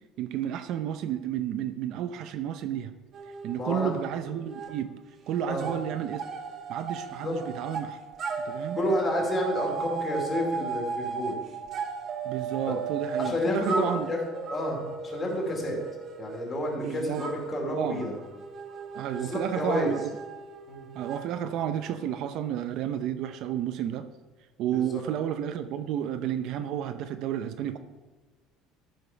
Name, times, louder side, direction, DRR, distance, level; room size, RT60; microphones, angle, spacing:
voice 1, 0.2-2.9 3.4-5.0 5.3-6.3 6.7-8.0 8.4-8.8 12.2-14.1 16.8-17.3 17.7-18.0 18.9-20.1 21.0-24.1 24.6-27.8, right 10 dB, 55° right, 9 dB, 0.6 m, -31 dB
sound 1, 3.1-4.8 5.0-22.1, right 5 dB, 35° right, 1.1 m, -36 dB
voice 2, 3.6-3.9 5.5-5.7 7.2-7.3 8.7-11.4 12.7-12.8 13.2-14.2 14.5-15.8 16.2-18.1 19.1-19.9 20.7-20.9 24.7-24.8, left 1 dB, 25° left, -1 dB, 2.7 m, -30 dB
13.5 x 5.2 x 5.7 m, 1.3 s
cardioid pair, 155°, 0 cm